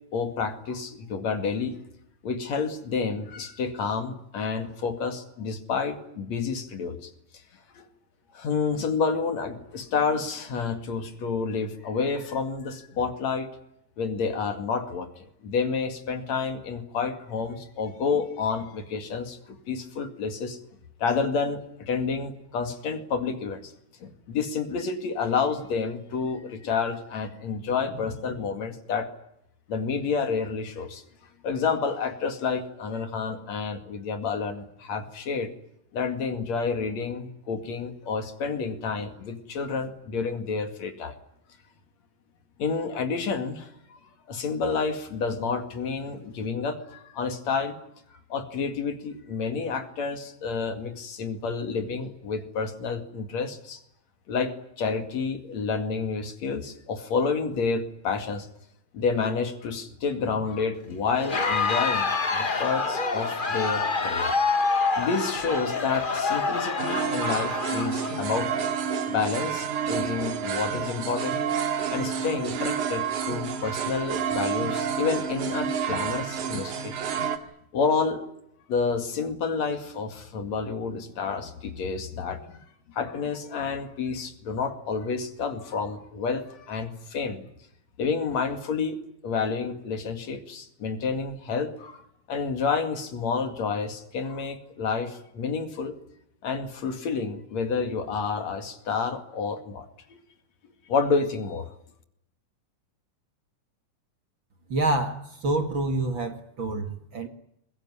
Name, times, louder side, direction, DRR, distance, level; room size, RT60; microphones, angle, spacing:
voice 1, 0.1-1.8 2.2-7.1 7.7-7.9 8.3-13.5 14.0-20.6 21.0-23.7 24.0-29.1 29.7-31.0 31.4-35.5 35.9-41.1 42.6-44.0 44.3-47.8 48.3-53.8 54.3-58.5 58.9-64.3 65.0-68.5 69.1-71.4 71.9-77.0 77.7-78.3 78.7-87.5 88.0-89.0 89.2-95.9 96.4-99.9 100.9-101.7, left 5 dB, 60° left, 7 dB, 3.4 m, -29 dB
Crowd, 61.1-68.6, left 4 dB, 75° left, 0.4 m, -27 dB
sound 1, 66.8-77.4, right 7 dB, 70° right, 3.5 m, -29 dB
voice 2, 104.7-107.3, right 2 dB, 40° right, 7 dB, 2.4 m, -27 dB
23.0 x 22.5 x 9.8 m, 0.76 s
omnidirectional pair, 3.6 m